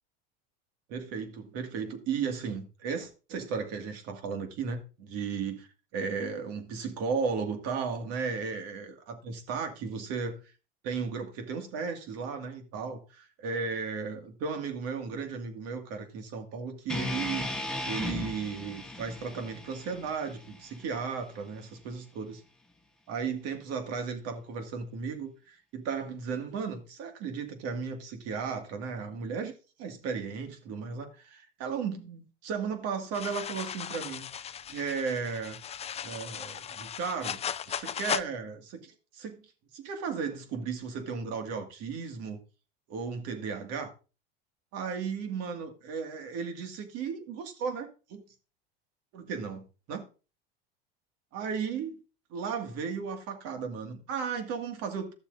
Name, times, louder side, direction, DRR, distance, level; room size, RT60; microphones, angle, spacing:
voice 1, 0.9-5.7 5.9-10.4 10.8-17.5 17.9-22.4 23.1-29.5 29.8-34.3 34.7-35.6 36.0-37.4 37.7-39.4 39.7-42.4 42.9-43.9 44.7-48.2 49.1-50.0 51.3-52.0 52.3-55.1, right 5 dB, 60° right, 2.1 m, -35 dB
sound 1, 16.9-21.1, left 2 dB, ahead, 1.4 m, -36 dB
sound 2, 33.1-38.2, left 8 dB, 20° left, 0.4 m, -37 dB
14.5 x 7.0 x 2.6 m
supercardioid pair, 100°, 29 cm